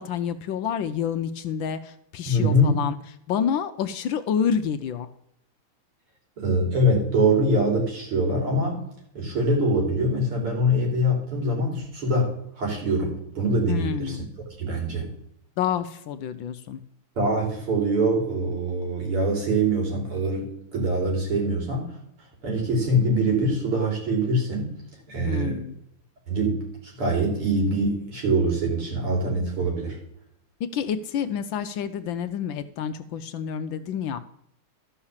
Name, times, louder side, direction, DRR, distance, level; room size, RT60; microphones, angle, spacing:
voice 1, 0.0-2.9 3.3-5.1 13.7-14.2 15.6-16.8 25.3-25.7 30.7-34.2, left 8 dB, 70° left, 10 dB, 1.3 m, -28 dB
voice 2, 2.3-2.8 6.4-8.8 9.1-12.3 12.6-14.2 14.6-15.1 17.2-22.0 22.4-24.8 25.1-25.6 26.3-30.0, right 1 dB, 75° right, -1 dB, 4.2 m, -24 dB
13.0 x 5.7 x 7.2 m, 0.73 s
omnidirectional pair, 2.4 m